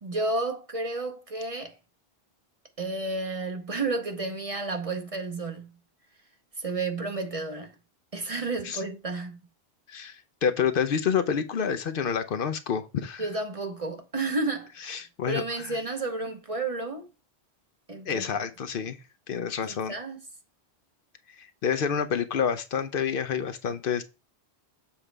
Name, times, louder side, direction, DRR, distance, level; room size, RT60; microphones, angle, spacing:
voice 1, 0.0-1.8 2.8-5.8 6.6-7.7 8.1-9.4 13.2-15.0 15.2-17.1 17.9-18.3 19.7-20.2, right 3 dB, 35° right, 0.9 m, -31 dB
voice 2, 9.9-13.3 14.8-15.8 18.1-19.0 19.3-19.9 21.4-24.0, left 7 dB, 65° left, 0.8 m, -28 dB
7.2 x 4.9 x 3.3 m
omnidirectional pair, 1.1 m